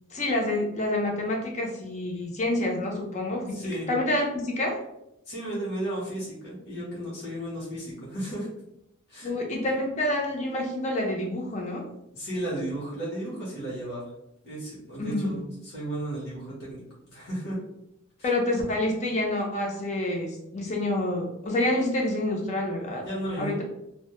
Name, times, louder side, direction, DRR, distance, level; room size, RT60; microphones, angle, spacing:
voice 1, 0.1-4.8 9.2-11.9 15.0-15.4 18.2-23.1 23.4-23.6, left 1 dB, 35° left, 0 dB, 0.5 m, -28 dB
voice 2, 3.5-3.9 5.3-8.5 9.1-9.3 12.1-14.0 14.4-17.6 18.2-18.3 23.0-23.5, right 1 dB, 60° left, -7 dB, 0.9 m, -34 dB
2.1 x 2.0 x 2.9 m, 0.83 s
head